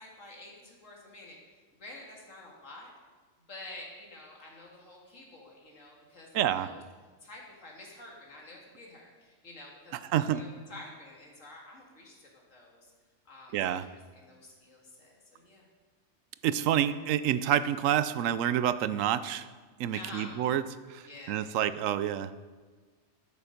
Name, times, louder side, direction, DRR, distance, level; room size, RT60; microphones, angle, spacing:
voice 1, 0.0-1.4 1.8-2.9 3.5-6.8 7.2-12.9 13.3-15.7 19.9-20.3 21.0-21.5, left 2 dB, 80° left, -2 dB, 2.5 m, -49 dB
voice 2, 6.3-6.7 10.1-10.4 13.5-13.9 16.4-19.5 19.8-20.6 20.9-22.3, right 10 dB, 85° right, 13 dB, 1.0 m, -28 dB
13.0 x 7.0 x 5.2 m, 1.5 s
omnidirectional pair, 1.3 m